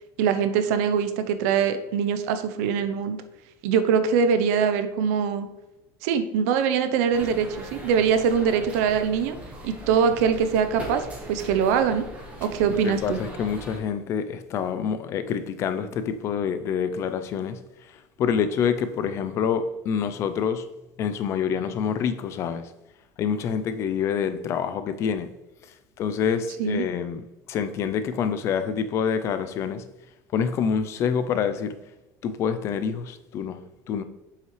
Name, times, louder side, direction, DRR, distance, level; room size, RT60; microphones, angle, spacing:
voice 1, 0.2-3.2 3.6-5.5 6.0-9.4 9.6-12.1 12.4-13.2 26.6-26.8, right 7 dB, 80° right, 0.7 m, -23 dB
sound 1, 7.1-13.8, right 1 dB, 15° right, 1.3 m, -40 dB
voice 2, 12.8-17.6 18.2-20.7 21.0-22.6 23.2-25.3 26.0-27.2 27.5-29.8 30.3-31.7 32.2-33.6 33.9-34.0, left 7 dB, 35° left, 0.5 m, -26 dB
7.6 x 5.7 x 3.2 m
cardioid pair, 170°, 8 cm